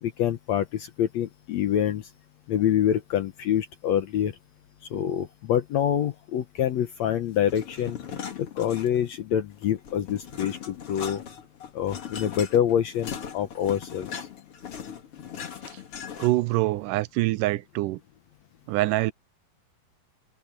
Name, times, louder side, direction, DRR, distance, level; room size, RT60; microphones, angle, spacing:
voice 1, 0.0-2.1 2.5-4.4 4.9-8.0 8.4-11.2 11.7-14.1, left 10 dB, 70° left, 1.7 m, -26 dB
sound 1, 7.5-9.2 9.5-16.6, left 7 dB, 45° left, 2.6 m, -39 dB
voice 2, 16.2-18.0 18.7-19.1, right 18 dB, 80° right, 2.0 m, -25 dB
omnidirectional pair, 4.1 m